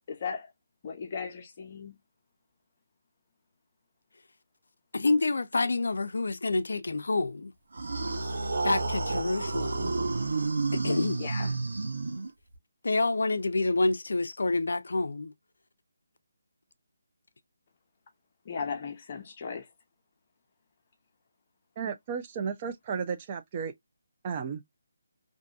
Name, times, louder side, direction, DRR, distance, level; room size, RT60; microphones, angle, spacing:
voice 1, 0.1-0.5 0.8-1.9 11.2-11.5 18.5-19.7, left 5 dB, 35° left, 0.7 m, -36 dB
voice 2, 4.9-7.5 8.6-9.9 10.7-11.5 12.8-15.3, left 3 dB, 75° left, 0.3 m, -28 dB
sound 1, 7.7-12.5, right 3 dB, 75° right, 0.8 m, -30 dB
voice 3, 21.8-23.7 24.2-24.6, right 6 dB, 30° right, 0.4 m, -33 dB
2.6 x 2.5 x 2.2 m
figure-of-eight pair, 160°, 0 cm